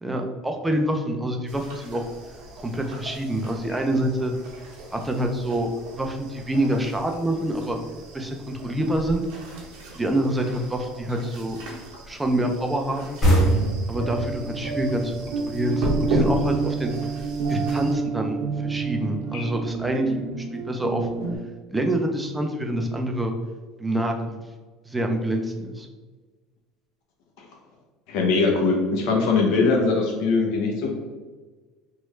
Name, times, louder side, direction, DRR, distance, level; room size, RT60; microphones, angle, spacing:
voice 1, 0.0-2.0 2.6-4.3 4.9-7.8 8.1-9.2 10.0-11.6 12.1-13.2 13.9-15.1 15.5-16.9 17.5-18.4 18.6-21.1 21.7-23.3 23.8-24.4 24.9-25.9, right 1 dB, 5° right, 3 dB, 0.4 m, -26 dB
sound 1, 1.5-18.0, right 1 dB, 70° right, 0.8 m, -35 dB
sound 2, 13.2-16.6, right 1 dB, 30° left, 1.4 m, -24 dB
sound 3, 13.9-21.4, right 5 dB, 90° right, 0.4 m, -29 dB
voice 2, 28.1-30.9, left 4 dB, 70° left, -1 dB, 0.6 m, -21 dB
3.1 x 2.3 x 3.1 m, 1.3 s
cardioid pair, 150°, 0 cm